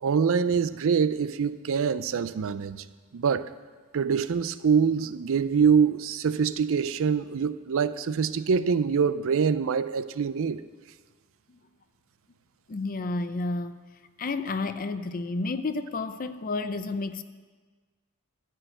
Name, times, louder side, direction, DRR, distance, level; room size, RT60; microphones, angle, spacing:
voice 1, 0.0-2.8 3.1-3.5 3.9-10.6, right 6 dB, 65° right, 14 dB, 0.4 m, -25 dB
voice 2, 12.7-13.8 14.2-17.2, left 3 dB, 40° left, 11 dB, 0.5 m, -31 dB
13.5 x 4.6 x 8.9 m, 1.4 s
head